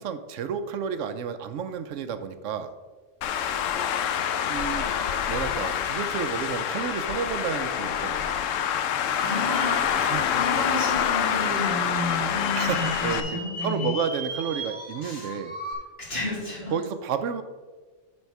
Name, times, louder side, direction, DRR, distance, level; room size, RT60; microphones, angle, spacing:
voice 1, 0.0-2.7 4.5-4.9 5.3-8.4 10.0-10.4 12.5-15.6 16.7-17.4, right 7 dB, 80° right, 10 dB, 1.0 m, -31 dB
Traffic noise roadway noise, 3.2-13.2, left 9 dB, 85° left, 1.0 m, -26 dB
voice 2, 9.2-13.9 15.0-15.3 16.1-16.7, left 1 dB, 55° left, -6 dB, 2.9 m, -32 dB
sound 1, 10.1-15.7, equal, 25° right, 1.4 m, -38 dB
9.7 x 4.3 x 4.6 m, 1.3 s
omnidirectional pair, 1.3 m